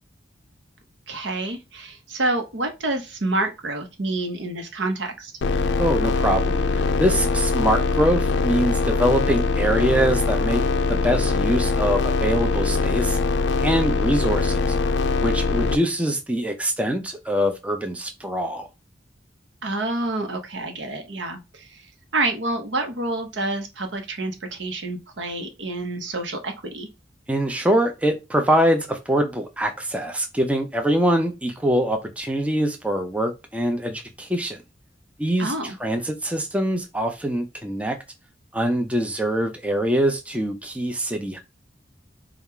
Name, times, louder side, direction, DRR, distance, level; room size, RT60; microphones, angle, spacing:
voice 1, 1.1-5.3 19.6-21.8 22.1-26.9 35.4-35.8, right 2 dB, 75° right, 0.9 m, -28 dB
sound 1, 5.4-15.8, left 3 dB, 70° left, 0.4 m, -22 dB
voice 2, 5.8-13.2 13.6-14.8 15.2-18.7 27.3-34.6 35.2-35.5 35.8-38.0 38.5-41.4, equal, 5° right, 0.4 m, -23 dB
4.3 x 2.4 x 3.6 m
head